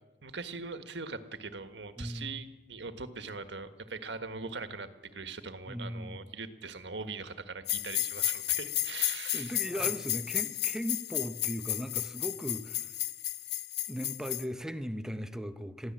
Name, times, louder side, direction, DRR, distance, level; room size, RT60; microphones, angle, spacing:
voice 1, 0.2-9.9, right 4 dB, 80° right, 9 dB, 1.5 m, -41 dB
voice 2, 2.0-2.4 5.7-6.2 9.3-12.9 13.9-15.9, equal, 5° right, 9 dB, 0.9 m, -37 dB
sound 1, 7.7-14.4, left 13 dB, 65° left, 0.9 m, -33 dB
22.5 x 15.0 x 7.6 m, 1.2 s
head